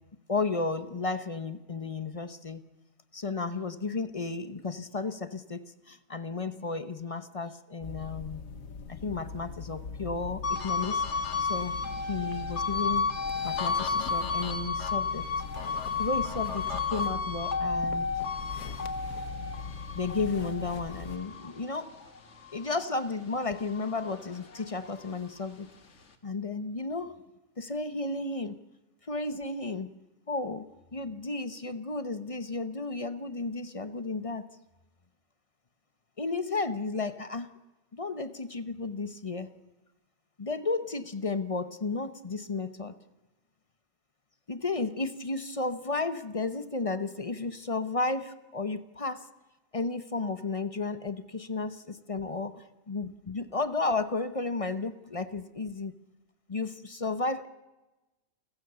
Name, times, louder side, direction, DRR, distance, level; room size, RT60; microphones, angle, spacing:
voice 1, 0.3-2.6 3.1-5.6 6.1-8.4 8.9-11.7 12.1-13.1 13.4-15.3 16.0-18.1 19.9-21.9 22.5-25.7 26.2-27.2 27.6-28.6 29.1-30.0 30.3-30.7 30.9-34.4 36.2-37.5 37.9-39.5 40.4-42.9 44.5-49.2 49.7-55.9 56.5-57.5, left 3 dB, 30° left, 12 dB, 0.9 m, -33 dB
sound 1, 7.8-21.2, left 5 dB, 85° left, 1.7 m, -41 dB
sound 2, 10.4-23.1 23.5-25.1, left 4 dB, 60° left, 2.0 m, -32 dB
28.5 x 15.0 x 6.9 m, 1.1 s
omnidirectional pair, 1.4 m